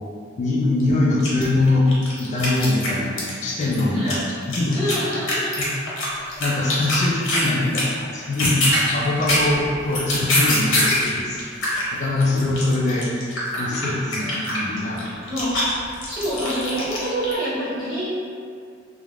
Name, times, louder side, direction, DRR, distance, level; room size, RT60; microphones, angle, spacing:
voice 1, 0.4-5.0 5.6-5.7 6.4-8.7 8.9-11.4 11.9-13.1 13.6-15.2, left 2 dB, 35° left, -4 dB, 0.3 m, -22 dB
sound 1, 0.8-0.9 1.2-3.3 3.6-7.5 7.7-8.0 8.3-11.1 11.4-17.3, left 1 dB, 75° left, 0.7 m, -24 dB
voice 2, 4.7-5.5 15.3-15.5 16.1-18.1, equal, 10° right, -16 dB, 1.4 m, -26 dB
2.4 x 2.0 x 3.2 m, 2.3 s
head